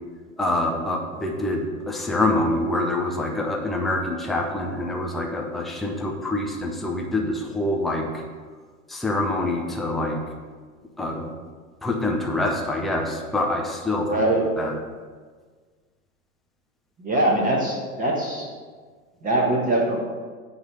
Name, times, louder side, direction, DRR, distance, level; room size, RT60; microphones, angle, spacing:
voice 1, 0.4-8.2 8.9-10.2 11.0-11.3 11.8-14.2 14.6-14.7, left 2 dB, ahead, 0 dB, 0.3 m, -25 dB
voice 2, 14.0-14.4 17.0-18.5 19.2-20.0, right 1 dB, 20° right, -2 dB, 1.4 m, -22 dB
9.5 x 3.2 x 6.6 m, 1.5 s
figure-of-eight pair, 90°, 42 cm